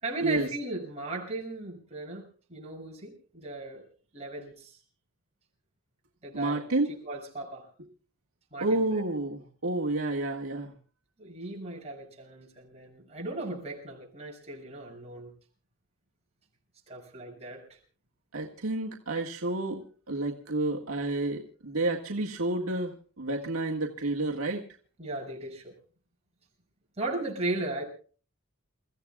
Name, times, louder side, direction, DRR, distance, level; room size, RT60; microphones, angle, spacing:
voice 1, 0.0-3.8 4.1-4.8 6.2-6.6 6.9-7.7 8.5-8.8 11.2-15.3 16.9-17.8 25.0-25.7 27.0-27.8, right 2 dB, 30° right, -2 dB, 6.8 m, -36 dB
voice 2, 6.3-7.0 8.6-10.7 18.3-24.7, right 2 dB, 80° right, 0 dB, 1.8 m, -30 dB
29.0 x 15.0 x 2.4 m, 0.40 s
head